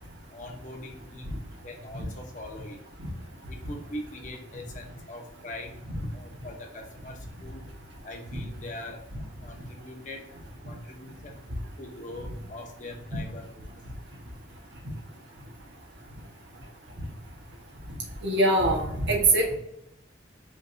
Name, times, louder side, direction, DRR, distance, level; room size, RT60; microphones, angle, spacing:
voice 1, 0.3-2.8 3.5-5.8 6.1-7.7 8.0-9.1 9.4-10.3 10.6-11.4 11.8-13.5, left 1 dB, 45° left, 2 dB, 1.0 m, -42 dB
voice 2, 18.2-19.5, right 2 dB, 85° right, -1 dB, 1.5 m, -23 dB
5.3 x 3.4 x 2.7 m, 0.78 s
head